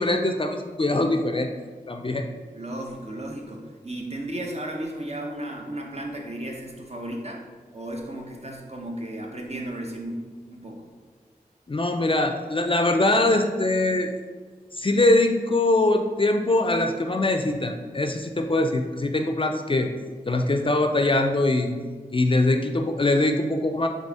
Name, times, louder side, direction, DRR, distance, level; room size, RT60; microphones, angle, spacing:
voice 1, 0.0-1.5 1.9-2.3 11.7-14.1 14.7-19.9 20.3-21.7 22.1-23.9, left 2 dB, 35° left, 5 dB, 0.4 m, -22 dB
voice 2, 2.5-7.4 7.7-10.9, right 1 dB, 45° right, 0 dB, 0.8 m, -34 dB
4.1 x 3.6 x 3.5 m, 1.5 s
wide cardioid pair, 45°, 15 cm